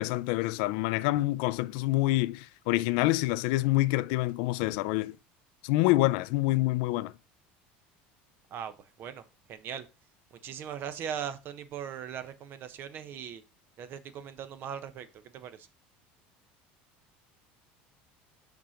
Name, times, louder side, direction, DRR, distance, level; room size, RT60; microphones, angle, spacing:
voice 1, 0.0-5.2 5.6-7.1, left 19 dB, 75° left, 0.4 m, -27 dB
voice 2, 8.5-9.2 9.5-9.8 10.4-13.4 13.8-15.1 15.3-15.7, right 8 dB, 50° right, 0.9 m, -39 dB
5.9 x 4.3 x 5.0 m
supercardioid pair, 110°, 5 cm